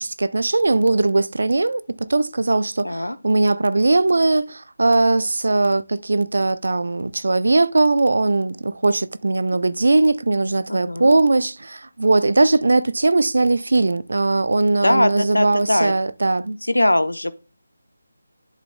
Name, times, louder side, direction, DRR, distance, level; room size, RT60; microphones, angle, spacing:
voice 1, 0.0-16.6, right 2 dB, 60° right, 0.5 m, -19 dB
voice 2, 2.8-3.2 10.7-11.1 14.8-15.9 16.6-17.3, left 1 dB, 80° left, 0.7 m, -20 dB
10.5 x 6.9 x 2.2 m
figure-of-eight pair, 155°, 0 cm